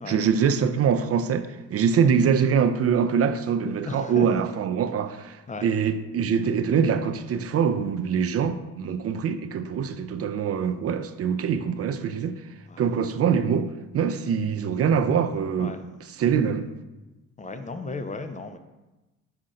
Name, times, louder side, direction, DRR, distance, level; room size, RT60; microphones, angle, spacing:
voice 1, 0.1-12.4 12.8-15.7 16.2-16.7, right 7 dB, 50° right, 0.5 m, -24 dB
voice 2, 3.9-4.4 5.5-5.7 12.7-13.1 15.6-15.8 17.4-18.6, left 3 dB, 25° left, 0.5 m, -35 dB
5.7 x 5.0 x 3.8 m
cardioid pair, 90°, 30 cm